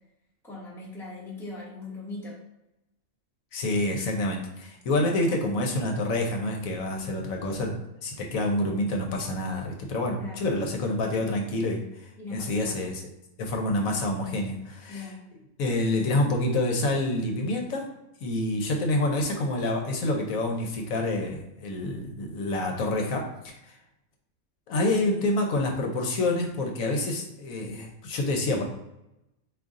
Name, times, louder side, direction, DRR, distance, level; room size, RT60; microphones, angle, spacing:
voice 1, 0.4-2.4 10.2-10.4 12.2-12.8 14.9-15.2, left 2 dB, ahead, -5 dB, 0.8 m, -40 dB
voice 2, 3.5-13.0 13.4-15.1 15.6-17.9 18.2-23.8 24.7-28.6, left 2 dB, 75° left, 2 dB, 1.1 m, -27 dB
3.9 x 2.7 x 3.6 m, 0.91 s
omnidirectional pair, 1.5 m